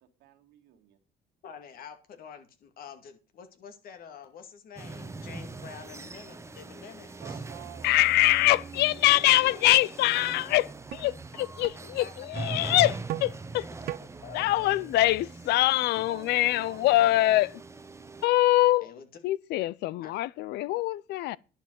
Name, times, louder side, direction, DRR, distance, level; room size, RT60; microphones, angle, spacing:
voice 1, 0.2-1.0 7.2-7.9 15.9-17.5, right 13 dB, 90° right, 2.1 m, -50 dB
voice 2, 1.4-7.4 11.7-12.5 14.2-14.8 18.8-19.1 20.0-20.1, left 7 dB, 60° left, 2.3 m, -47 dB
sound 1, 4.8-18.3, right 3 dB, 15° right, 1.0 m, -41 dB
voice 3, 7.8-13.7 14.3-17.5 18.2-18.9 19.2-21.4, left 16 dB, 80° left, 0.5 m, -24 dB
sound 2, 9.6-9.7 10.2-10.3 10.9-11.0 11.6-11.8 12.4-12.5 13.1-13.3 13.9-14.0, right 14 dB, 65° right, 0.5 m, -36 dB
11.0 x 5.2 x 8.1 m
cardioid pair, 110°, 17 cm